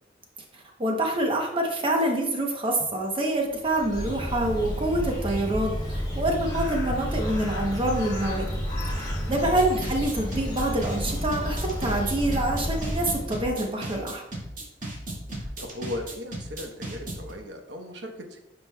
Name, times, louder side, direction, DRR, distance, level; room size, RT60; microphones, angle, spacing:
voice 1, 0.5-8.5 9.0-14.2, right 1 dB, 30° right, 1 dB, 0.9 m, -26 dB
Bird, 3.5-13.5, equal, 25° left, 2.1 m, -31 dB
sound 1, 9.3-17.3, right 1 dB, 45° right, 2.2 m, -36 dB
voice 2, 9.3-9.7 15.4-18.4, left 1 dB, 80° right, 3 dB, 1.1 m, -38 dB
10.5 x 5.2 x 2.3 m, 0.92 s
head